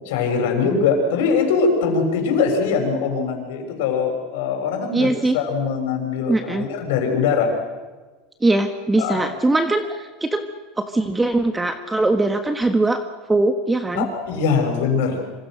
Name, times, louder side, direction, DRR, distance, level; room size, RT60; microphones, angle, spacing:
voice 1, 0.0-7.5 9.0-9.3 13.9-15.2, left 5 dB, 75° left, 4 dB, 6.5 m, -22 dB
voice 2, 4.9-5.3 6.3-6.6 8.4-10.4 10.8-13.0 13.3-14.0, right 2 dB, 10° right, 7 dB, 1.4 m, -21 dB
26.0 x 26.0 x 6.5 m, 1.3 s
supercardioid pair, 125°, 0 cm